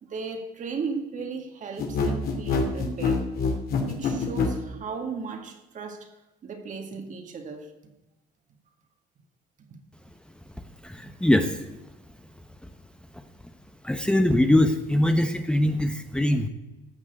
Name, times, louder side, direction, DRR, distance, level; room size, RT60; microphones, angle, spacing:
voice 1, 0.0-3.3 3.8-6.1 6.4-7.7 9.7-9.8, right 5 dB, 50° right, 2.1 m, -36 dB
sound 1, 1.8-4.6, left 5 dB, 65° left, 2.7 m, -25 dB
voice 2, 10.8-11.6 12.6-12.7 13.1-13.2 13.8-16.5, left 1 dB, 5° left, 0.9 m, -22 dB
14.0 x 6.1 x 8.2 m
cardioid pair, 110°, 17 cm